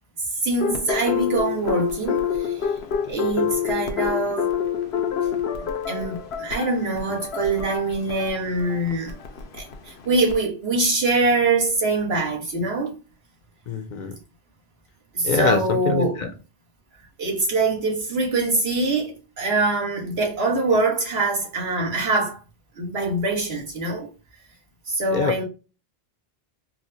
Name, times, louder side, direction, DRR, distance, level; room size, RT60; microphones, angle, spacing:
voice 1, 0.4-2.7 3.1-4.5 5.9-9.2 9.5-13.0 15.1-16.2 17.2-22.4 22.8-24.1 24.9-25.4, right 2 dB, 80° right, 1.4 m, -24 dB
sound 1, 0.6-10.4, left 8 dB, 85° left, 0.9 m, -27 dB
voice 2, 13.7-14.2 15.2-16.3 25.1-25.4, left 4 dB, 55° left, 0.6 m, -24 dB
4.3 x 2.1 x 2.6 m
omnidirectional pair, 1.0 m